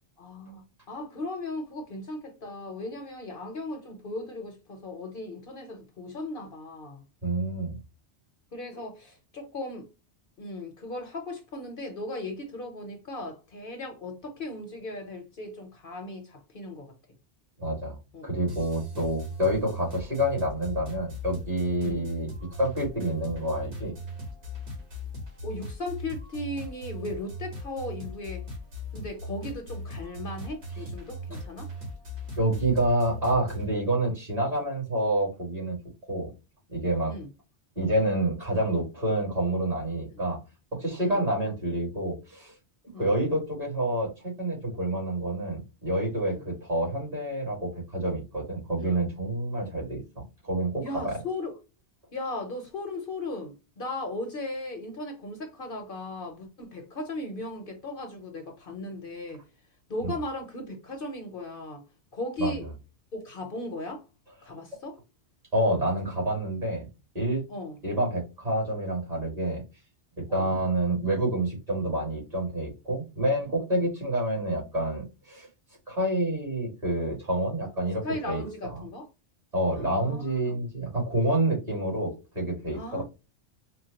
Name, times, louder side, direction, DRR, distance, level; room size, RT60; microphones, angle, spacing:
voice 1, 0.2-7.0 8.5-9.9 10.4-16.9 18.1-18.4 21.8-22.1 25.4-28.4 28.9-31.7 37.1-37.3 40.1-40.2 41.0-41.2 42.9-43.1 46.2-46.4 48.8-49.0 50.8-51.6 52.1-59.4 59.9-61.8 62.1-62.7 63.1-64.0 64.4-65.0 67.5-67.8 70.3-70.5 78.0-79.1 79.7-80.6 82.7-83.0, left 2 dB, 55° left, 0.9 m, -37 dB
voice 2, 7.2-7.8 17.6-18.0 18.2-22.3 22.6-23.9 32.3-35.8 36.1-36.3 36.7-37.1 37.8-40.4 40.7-42.5 43.0-51.2 62.4-62.5 65.5-66.9 67.1-67.4 67.8-69.6 70.2-75.5 75.9-78.7 79.5-83.0, right 1 dB, 35° right, 2.1 m, -28 dB
sound 1, 18.5-33.7, equal, 70° right, 1.8 m, -39 dB
4.4 x 2.3 x 2.7 m
omnidirectional pair, 1.2 m